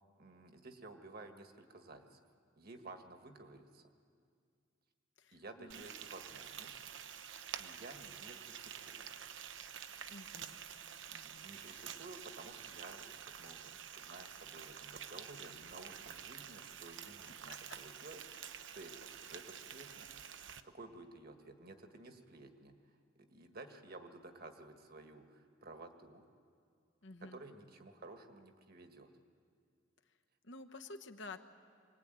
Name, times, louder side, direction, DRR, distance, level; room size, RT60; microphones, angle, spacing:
voice 1, 0.2-2.2 2.6-3.9 5.3-6.8 7.6-9.1 11.2-20.1 20.6-26.2 27.3-29.1, right 2 dB, 50° right, 6 dB, 1.7 m, -54 dB
voice 2, 5.2-5.9 10.1-10.6 11.1-11.9 27.0-27.4 30.4-31.4, left 3 dB, 65° left, 6 dB, 1.2 m, -51 dB
Frying (food), 5.7-20.6, right 8 dB, 65° right, 0.8 m, -49 dB
25.0 x 19.0 x 9.1 m, 2.2 s
head